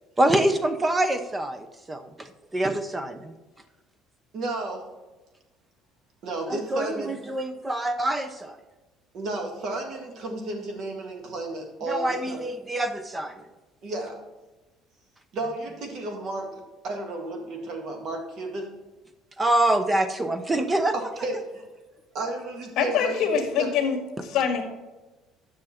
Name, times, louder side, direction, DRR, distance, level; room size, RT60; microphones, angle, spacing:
voice 1, 0.2-3.3 6.5-8.6 11.9-13.5 19.4-20.9, right 1 dB, 10° right, 10 dB, 0.7 m, -25 dB
voice 2, 4.3-4.8 6.2-7.2 9.1-12.4 13.8-14.2 15.3-16.5 16.8-18.7 20.9-21.4 22.1-23.7, right 2 dB, 45° right, 3 dB, 1.8 m, -32 dB
voice 3, 22.8-24.6, left 7 dB, 55° left, 4 dB, 1.8 m, -25 dB
9.9 x 6.3 x 4.3 m, 1.1 s
cardioid pair, 160°, 0 cm